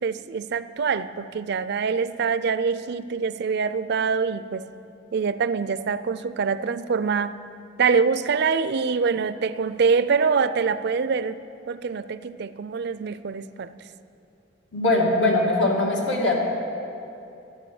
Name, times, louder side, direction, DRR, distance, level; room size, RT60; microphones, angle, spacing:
voice 1, 0.0-4.7 5.1-7.3 7.8-11.4 11.7-13.7, right 5 dB, 60° right, 14 dB, 0.4 m, -24 dB
voice 2, 14.7-16.3, left 2 dB, 80° left, -2 dB, 2.5 m, -21 dB
13.0 x 9.8 x 7.0 m, 2.7 s
head